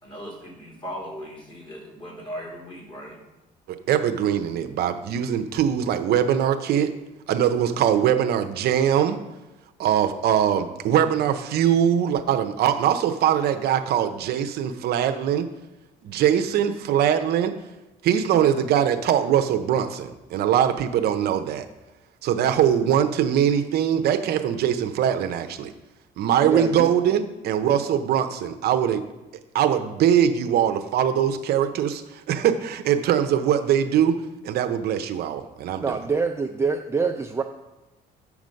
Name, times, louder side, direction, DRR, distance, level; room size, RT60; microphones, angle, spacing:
voice 1, 0.0-3.2, equal, 30° left, -2 dB, 3.4 m, -38 dB
voice 2, 3.7-6.9 7.3-9.2 9.8-15.5 16.0-17.5 18.0-21.7 22.2-25.7 26.2-29.0 29.5-34.2 34.4-36.0, right 9 dB, 70° right, 7 dB, 0.7 m, -22 dB
voice 3, 26.4-26.9 35.8-37.4, right 4 dB, 15° right, 4 dB, 0.5 m, -25 dB
8.4 x 6.1 x 5.3 m, 1.1 s
cardioid pair, 110°, 17 cm